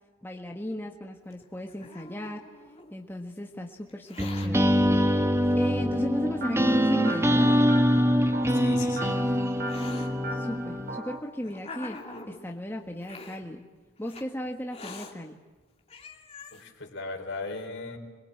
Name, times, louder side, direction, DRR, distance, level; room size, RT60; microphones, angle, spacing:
voice 1, 0.2-2.5 2.9-4.7 5.0-7.5 10.3-12.0 12.3-13.6 14.0-15.4, equal, 10° left, 1 dB, 1.5 m, -35 dB
Hiss, 1.3-3.0 3.9-4.5 5.5-5.6 6.4-6.5 7.0-8.0 8.9-10.1 10.9-12.4 13.0-13.4 14.1-14.2 14.7-15.1 15.6-15.7 15.9-16.6, left 3 dB, 30° left, 2.8 m, -45 dB
sound 1, 4.2-11.0, equal, 10° right, 1.0 m, -24 dB
sound 2, 6.4-11.2, right 1 dB, 45° right, 3.5 m, -39 dB
voice 2, 8.5-9.4 16.5-18.0, left 3 dB, 55° left, 3 dB, 4.3 m, -37 dB
27.0 x 22.5 x 8.6 m, 1.3 s
head